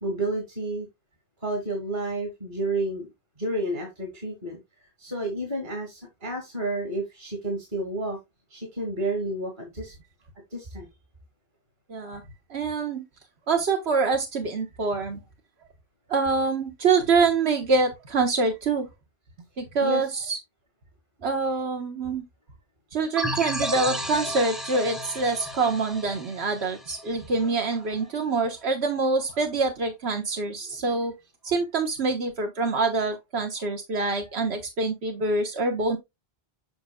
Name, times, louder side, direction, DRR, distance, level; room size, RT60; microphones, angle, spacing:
voice 1, 0.0-0.9 1.4-3.1 3.4-4.6 5.0-8.2 8.5-9.9 10.5-10.9 19.8-20.1, right 2 dB, 50° right, 2.5 m, -30 dB
voice 2, 11.9-12.2 12.5-13.0 13.5-15.2 16.1-18.9 19.6-20.4 21.2-22.2 22.9-31.1 31.4-36.0, right 4 dB, 85° right, 1.4 m, -25 dB
sound 1, 23.2-27.6, equal, ahead, 0.6 m, -33 dB
7.8 x 6.3 x 2.2 m
omnidirectional pair, 1.1 m